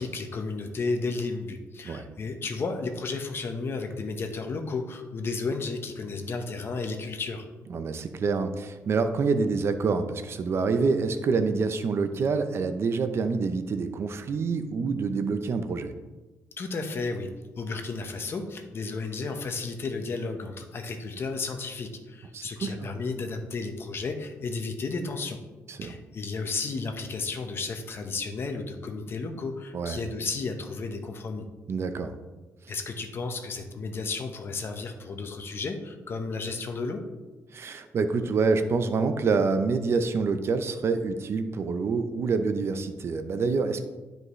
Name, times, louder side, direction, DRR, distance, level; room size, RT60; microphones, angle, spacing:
voice 1, 0.0-7.5 16.6-17.3 17.6-25.4 25.8-31.4 32.7-37.0, left 4 dB, 50° left, 5 dB, 1.1 m, -33 dB
voice 2, 7.7-15.9 22.3-22.9 25.7-25.9 29.7-30.0 31.7-32.1 37.5-43.8, right 4 dB, 55° right, 9 dB, 0.7 m, -27 dB
12.0 x 5.2 x 3.2 m, 1.2 s
cardioid pair, 100°, 5 cm